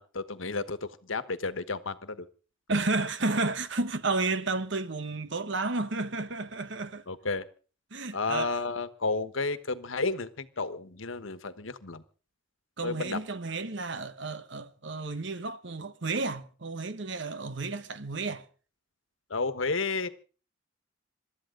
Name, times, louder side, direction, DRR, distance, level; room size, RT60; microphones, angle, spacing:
voice 1, 0.0-2.3 7.1-7.5 8.1-12.0 12.8-13.2 19.3-20.1, left 3 dB, 80° left, 1.3 m, -32 dB
voice 2, 2.7-7.0 7.9-8.5 12.8-18.4, right 3 dB, 65° right, 1.2 m, -32 dB
26.5 x 12.5 x 3.8 m
head